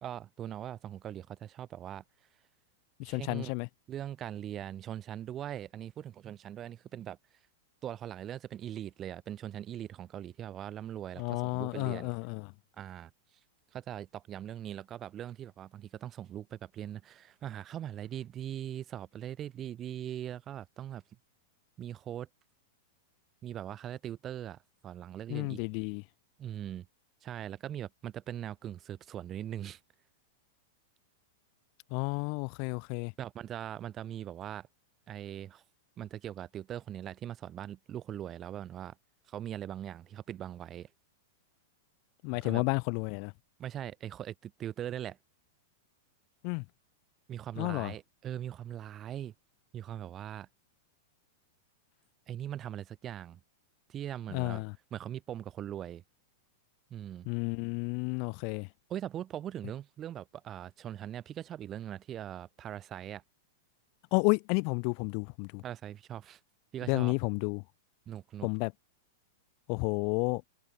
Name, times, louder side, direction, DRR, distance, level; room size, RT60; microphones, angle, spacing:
voice 1, 0.0-2.0 3.0-3.5 3.9-7.2 7.8-12.1 12.8-13.1 13.7-21.0 21.8-22.3 23.4-24.6 24.8-25.6 26.4-26.9 27.2-29.8 33.2-34.7 35.1-35.6 36.0-39.0 39.3-40.9 42.3-42.6 43.6-45.2 47.3-49.3 49.7-50.5 52.3-53.4 53.9-54.6 54.9-56.0 56.9-57.3 58.9-63.2 65.6-66.4 66.7-67.1 68.1-68.5, right 11 dB, 30° right, 1.0 m, -41 dB
voice 2, 3.0-3.7 11.2-12.5 25.3-26.0 31.9-33.1 42.2-43.3 46.4-46.6 47.6-47.9 54.3-54.7 57.3-58.7 64.1-65.6 66.9-67.6 68.4-68.7 69.7-70.4, left 39 dB, 45° left, 0.6 m, -31 dB
hypercardioid pair, 100°, 0 cm